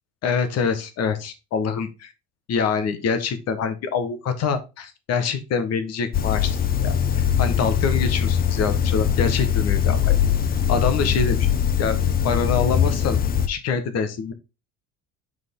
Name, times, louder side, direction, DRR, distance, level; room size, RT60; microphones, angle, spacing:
voice 1, 0.2-1.9 2.5-6.6 6.8-10.2 10.7-11.4 11.8-12.0 12.2-13.2 13.5-14.3, left 5 dB, 55° left, 10 dB, 1.4 m, -25 dB
sound 1, 6.1-13.5, left 9 dB, 30° left, 0.7 m, -21 dB
6.2 x 4.8 x 3.8 m, 0.27 s
cardioid pair, 125°, 31 cm